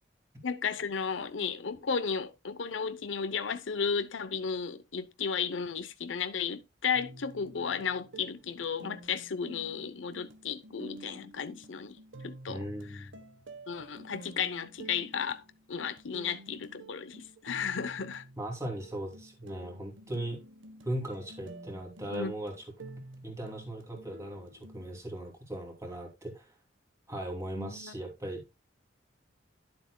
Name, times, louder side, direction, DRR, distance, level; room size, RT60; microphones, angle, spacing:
voice 1, 0.4-12.0 12.2-12.7 12.9-13.1 13.7-15.4 15.7-18.2 22.1-22.3 27.6-27.9, left 6 dB, 80° left, 0.7 m, -34 dB
sound 1, 6.9-24.9, right 1 dB, 80° right, 1.2 m, -50 dB
voice 2, 12.5-13.2 18.4-20.4 20.8-22.7 23.2-26.6 27.1-28.4, right 1 dB, 15° right, 2.6 m, -38 dB
11.5 x 7.6 x 2.2 m
head